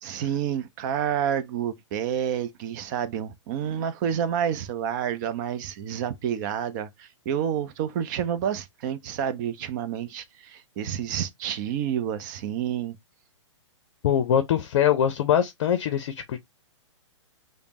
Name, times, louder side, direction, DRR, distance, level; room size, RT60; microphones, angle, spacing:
voice 1, 0.0-13.0, right 9 dB, 40° right, 0.6 m, -29 dB
voice 2, 14.0-16.4, left 9 dB, 50° left, 0.6 m, -23 dB
5.0 x 2.1 x 2.9 m
hypercardioid pair, 125°, 16 cm